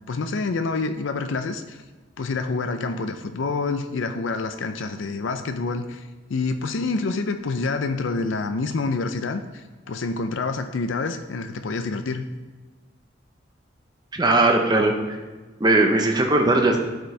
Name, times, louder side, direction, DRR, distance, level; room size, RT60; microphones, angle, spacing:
voice 1, 0.1-1.8 2.2-6.0 6.3-12.3, left 3 dB, 90° left, 8 dB, 0.5 m, -27 dB
voice 2, 14.1-14.9 15.6-16.8, right 2 dB, 20° right, 2 dB, 0.8 m, -18 dB
11.5 x 5.1 x 3.3 m, 1.3 s
head